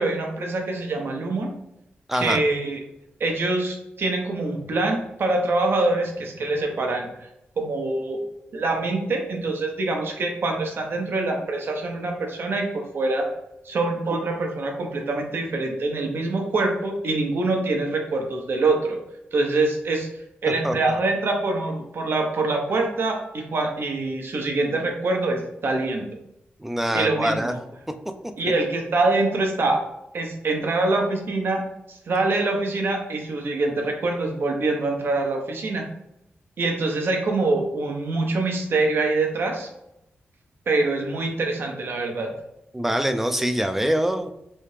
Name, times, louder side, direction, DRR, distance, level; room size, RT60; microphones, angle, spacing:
voice 1, 0.0-1.5 2.1-2.8 3.2-7.3 7.6-8.2 8.5-13.3 13.6-19.0 19.3-20.1 20.4-26.1 26.9-27.6 28.4-29.8 30.1-35.9 36.6-39.7 40.7-42.3, right 2 dB, 65° right, 2 dB, 0.8 m, -25 dB
voice 2, 2.1-2.4 20.6-20.7 26.6-27.5 42.7-44.3, equal, 5° right, 7 dB, 0.3 m, -24 dB
3.3 x 2.8 x 3.2 m, 0.83 s
cardioid pair, 90°, 4 cm